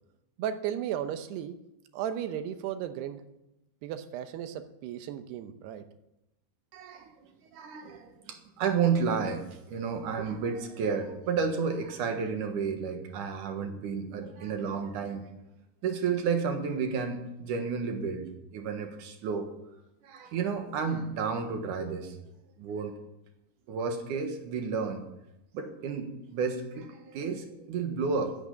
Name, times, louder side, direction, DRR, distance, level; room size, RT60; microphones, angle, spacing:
voice 1, 0.4-1.6 1.9-3.2 3.8-5.8, right 10 dB, 75° right, 10 dB, 2.8 m, -35 dB
voice 2, 6.7-7.1 7.5-9.4 9.7-15.3 15.8-19.5 20.0-22.2 22.6-23.0 23.7-25.0 25.5-28.4, right 5 dB, 60° right, 5 dB, 2.4 m, -31 dB
12.0 x 10.5 x 8.5 m, 0.90 s
omnidirectional pair, 5.1 m